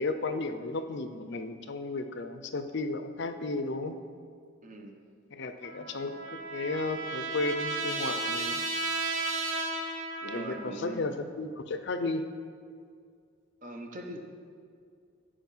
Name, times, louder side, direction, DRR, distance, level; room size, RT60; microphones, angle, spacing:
voice 1, 0.0-3.9 5.3-8.6 10.2-12.2, left 3 dB, 60° left, 9 dB, 0.6 m, -34 dB
voice 2, 4.6-5.0 10.2-11.0 13.6-14.2, right 1 dB, 40° right, 3 dB, 1.0 m, -41 dB
Trumpet, 5.6-10.8, right 3 dB, 75° right, 1.2 m, -34 dB
13.5 x 5.0 x 5.5 m, 2.2 s
head